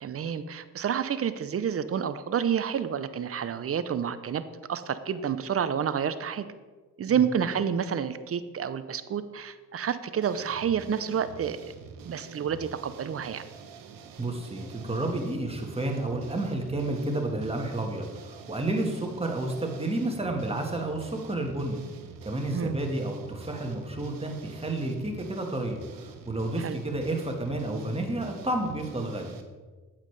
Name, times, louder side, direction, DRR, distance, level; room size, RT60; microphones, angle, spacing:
voice 1, 0.0-6.5 7.0-11.6 12.0-13.4 22.5-22.8 26.6-26.8, right 8 dB, 45° right, 13 dB, 0.6 m, -29 dB
sound 1, 10.2-29.4, right 5 dB, 90° right, 0.8 m, -47 dB
voice 2, 14.2-21.8 22.2-25.8 26.2-29.3, right 2 dB, 20° right, 2 dB, 1.5 m, -30 dB
8.9 x 7.5 x 3.3 m, 1.4 s
cardioid pair, 75°, 33 cm